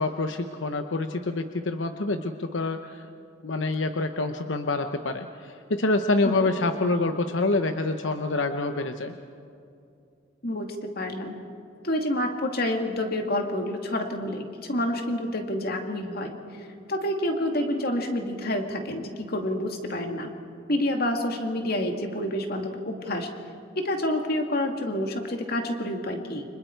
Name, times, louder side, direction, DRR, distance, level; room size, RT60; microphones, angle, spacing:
voice 1, 0.0-3.1 3.4-9.1, left 2 dB, 85° left, 7 dB, 0.9 m, -27 dB
voice 2, 10.4-11.4 11.8-20.3 20.7-23.3 23.8-26.4, left 1 dB, 55° left, 3 dB, 2.4 m, -28 dB
29.5 x 25.5 x 4.6 m, 2.5 s
head